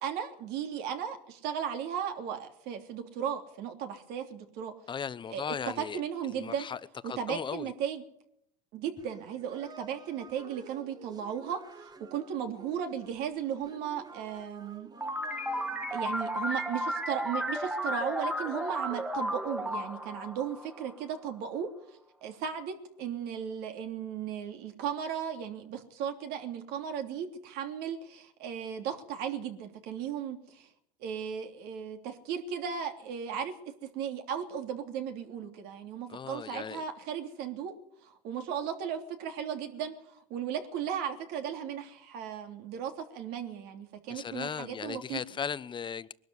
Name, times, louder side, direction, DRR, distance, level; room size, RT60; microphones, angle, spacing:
voice 1, 0.0-4.7 5.3-6.7 7.0-8.0 8.7-14.9 15.9-21.7 22.2-30.7 31.0-37.8 38.0-45.2, right 8 dB, 70° right, 3.3 m, -36 dB
voice 2, 4.9-6.0 6.3-7.7 36.1-36.8 44.1-46.1, left 7 dB, 25° left, 0.8 m, -37 dB
sound 1, 9.0-16.0, right 4 dB, 25° right, 1.5 m, -51 dB
sound 2, 15.0-21.3, equal, 5° right, 1.8 m, -34 dB
22.0 x 12.5 x 9.6 m
supercardioid pair, 110°, 17 cm